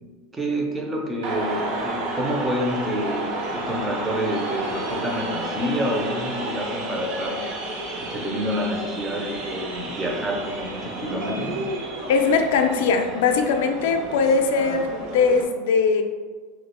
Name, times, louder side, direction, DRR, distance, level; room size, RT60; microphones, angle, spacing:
voice 1, 0.0-7.5 8.0-11.7, equal, 10° right, 0 dB, 0.3 m, -28 dB
sound 1, 1.2-15.4, right 2 dB, 80° right, 0.7 m, -31 dB
voice 2, 12.1-16.0, left 4 dB, 70° left, 6 dB, 0.3 m, -20 dB
2.8 x 2.1 x 4.1 m, 1.4 s
supercardioid pair, 175°, 0 cm